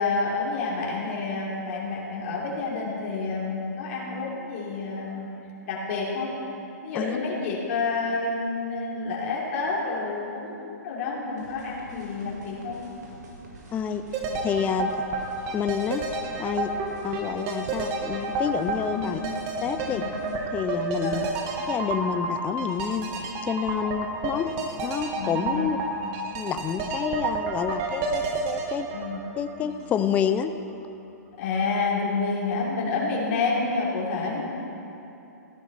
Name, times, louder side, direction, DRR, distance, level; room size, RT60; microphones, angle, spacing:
voice 1, 0.0-5.3 5.7-6.3 6.8-12.8 18.9-19.2 19.9-20.1 21.0-21.3 23.8-23.9 24.3-24.4 25.1-25.8 28.9-29.2 31.4-34.5, left 4 dB, 50° left, -4 dB, 3.0 m, -29 dB
sound 1, 11.4-20.4, right 2 dB, 80° right, 2.5 m, -47 dB
voice 2, 13.7-14.9 15.5-16.0 16.4-16.7 17.0-19.2 19.6-20.0 20.5-21.3 21.7-24.5 24.8-25.8 26.3-28.9 29.4-30.5, left 8 dB, 15° left, 9 dB, 0.4 m, -28 dB
sound 2, 14.1-30.1 30.4-30.5, right 3 dB, 35° right, 1.3 m, -30 dB
15.0 x 9.6 x 4.2 m, 2.9 s
hypercardioid pair, 140°, 9 cm